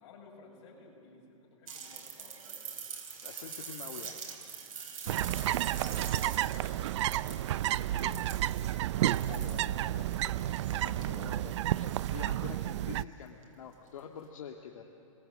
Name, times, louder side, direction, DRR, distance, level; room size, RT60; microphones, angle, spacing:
voice 1, 0.0-2.7 5.0-10.4 11.2-11.5, left 3 dB, 50° left, -1 dB, 7.3 m, -56 dB
sound 1, 1.7-12.0 13.4-13.5, right 6 dB, 85° right, 4.3 m, -45 dB
voice 2, 3.2-4.2 9.3-10.0 10.7-14.8, left 7 dB, 70° left, 2 dB, 1.8 m, -47 dB
sound 2, 5.1-13.0, right 13 dB, 55° right, 0.5 m, -31 dB
29.5 x 22.5 x 7.7 m, 2.8 s
hypercardioid pair, 150°, 17 cm